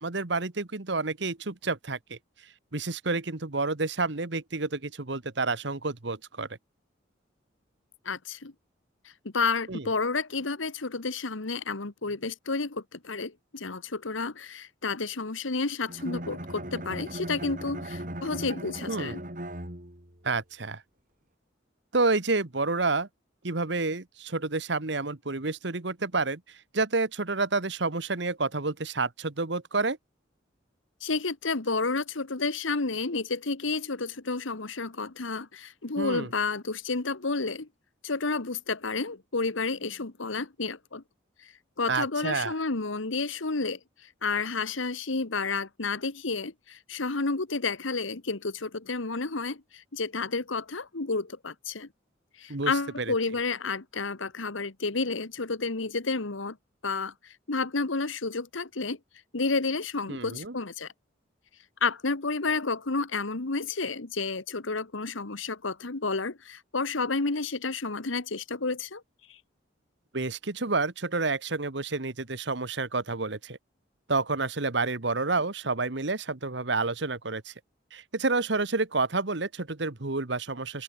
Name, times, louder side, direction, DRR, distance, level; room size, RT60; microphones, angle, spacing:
voice 1, 0.0-2.2 2.7-6.5 9.7-9.9 18.9-19.2 20.2-20.8 21.9-23.1 23.4-30.0 36.0-36.3 41.9-42.5 52.5-52.7 53.0-53.1 60.1-60.5 70.1-73.6 74.1-77.5 77.9-80.8, right 3 dB, 65° right, 1.4 m, -29 dB
voice 2, 8.0-8.5 9.3-19.2 31.0-37.7 38.0-41.0 41.8-51.9 52.4-56.6 56.8-59.0 59.3-60.9 61.8-69.0 69.3-69.4, left 4 dB, 85° left, 1.5 m, -31 dB
Bowed string instrument, 15.9-20.2, right 1 dB, 45° right, 4.0 m, -38 dB
open air
head